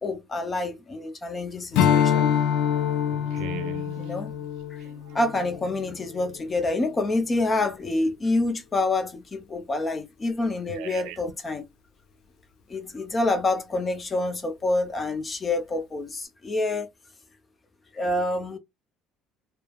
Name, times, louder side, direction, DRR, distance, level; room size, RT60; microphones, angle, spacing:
voice 1, 0.0-2.3 4.0-4.3 5.1-11.7 12.7-16.9 17.9-18.6, left 2 dB, 20° left, 0.6 m, -27 dB
Strum, 1.7-6.4, left 8 dB, 70° left, 0.4 m, -25 dB
voice 2, 3.1-4.3 4.8-5.2 10.7-11.3, right 9 dB, 80° right, 0.5 m, -39 dB
3.0 x 2.1 x 2.3 m
cardioid pair, 160°, 0 cm